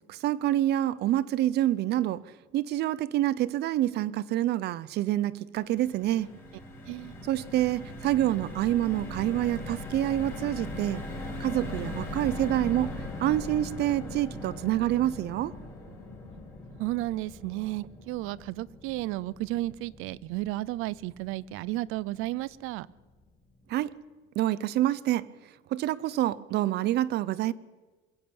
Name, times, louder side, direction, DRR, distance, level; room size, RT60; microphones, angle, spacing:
voice 1, 0.1-2.2 2.5-6.3 7.3-11.0 11.4-12.9 13.2-15.5 23.7-23.9 24.4-25.3 25.7-27.5, right 13 dB, 50° right, 0.7 m, -27 dB
sound 1, 5.6-21.9 22.3-22.5 22.7-22.9, left 1 dB, 10° left, 5.1 m, -40 dB
voice 2, 16.8-22.9, right 18 dB, 85° right, 0.6 m, -33 dB
22.0 x 14.0 x 8.9 m
cardioid pair, 175°, 21 cm